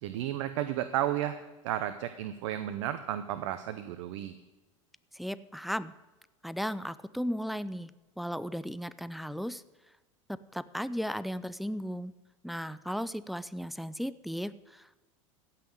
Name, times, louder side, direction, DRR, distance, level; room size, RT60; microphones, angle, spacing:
voice 1, 0.0-1.4 1.6-4.4, right 12 dB, 65° right, 10 dB, 0.8 m, -33 dB
voice 2, 5.1-5.9 6.4-7.9 8.2-9.6 10.3-12.1 12.4-15.0, equal, ahead, 15 dB, 0.4 m, -35 dB
15.5 x 5.8 x 7.8 m, 1.1 s
hypercardioid pair, 90°, 17 cm